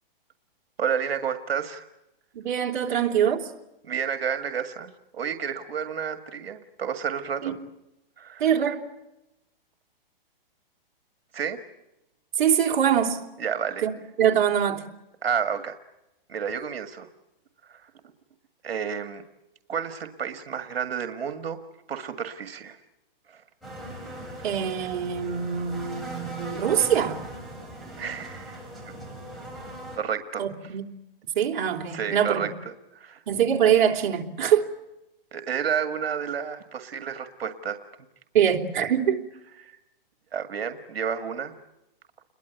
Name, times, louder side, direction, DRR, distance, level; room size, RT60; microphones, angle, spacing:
voice 1, 0.8-1.9 2.9-3.0 3.8-7.5 8.2-8.6 11.3-11.6 13.4-13.8 15.2-15.8 16.3-17.1 17.7-17.9 18.6-19.2 19.7-21.6 21.9-22.8 23.3-23.4 28.0-28.6 28.9-29.0 29.5-29.6 30.0-30.8 31.9-32.5 32.9-33.2 35.3-37.8 39.6-39.8 40.3-41.5, right 7 dB, 85° right, 2.0 m, -31 dB
voice 2, 2.3-3.5 7.4-7.5 8.4-8.8 12.4-13.2 13.8-13.9 14.2-14.8 24.4-27.2 30.4-30.8 31.3-32.5 33.3-34.7 38.3-39.2, right 9 dB, 55° right, 3.3 m, -23 dB
sound 1, 23.6-30.0, right 1 dB, ahead, 7.4 m, -39 dB
29.5 x 22.5 x 8.2 m
hypercardioid pair, 145°, 30 cm